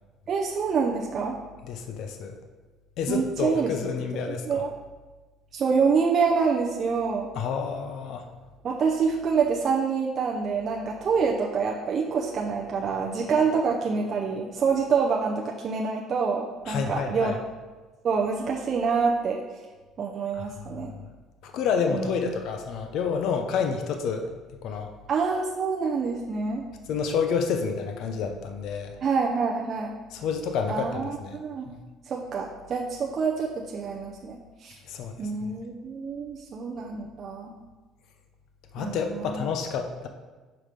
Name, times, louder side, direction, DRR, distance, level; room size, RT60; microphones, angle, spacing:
voice 1, 0.3-1.3 3.1-3.7 4.3-4.7 5.5-7.3 8.6-17.3 18.0-19.4 20.0-20.9 21.9-22.3 25.1-26.6 29.0-29.9 30.7-31.7 32.1-34.8 35.2-37.5 38.8-39.4, right 5 dB, 35° right, -1 dB, 0.6 m, -26 dB
voice 2, 1.7-2.4 3.0-4.6 7.3-8.2 16.7-17.4 20.3-20.4 21.4-24.3 24.6-24.9 26.9-29.0 30.1-31.4 31.7-31.8 34.9-35.3 38.7-40.1, left 6 dB, 60° left, 5 dB, 0.7 m, -29 dB
5.9 x 4.8 x 5.1 m, 1.3 s
cardioid pair, 155°, 0 cm